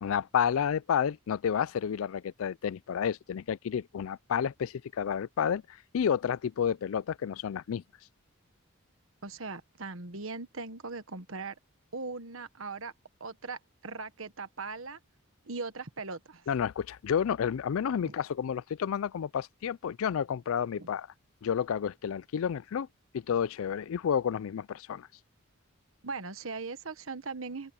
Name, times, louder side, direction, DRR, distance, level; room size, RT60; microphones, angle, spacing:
voice 1, 0.0-7.8 16.5-21.1 21.4-22.9 23.1-25.1, left 8 dB, 75° left, 0.4 m, -30 dB
voice 2, 9.2-11.5 11.9-12.9 13.2-15.0 15.4-16.4 18.0-18.1 20.8-20.9 26.0-27.7, right 4 dB, 75° right, 1.4 m, -39 dB
open air
head